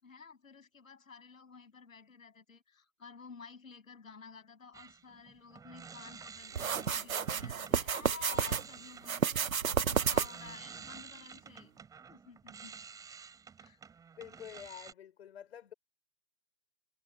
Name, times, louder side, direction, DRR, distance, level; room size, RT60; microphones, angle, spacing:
voice 1, 0.0-11.7 12.1-12.8 13.6-13.8, left 5 dB, 75° left, 8.0 m, -52 dB
sound 1, 4.7-7.8 8.2-14.9, right 6 dB, 10° right, 5.5 m, -51 dB
sound 2, 6.6-8.6 9.0-10.5, right 7 dB, 90° right, 1.0 m, -31 dB
voice 2, 14.2-15.7, left 9 dB, 50° left, 5.6 m, -48 dB
hypercardioid pair, 145°, 40 cm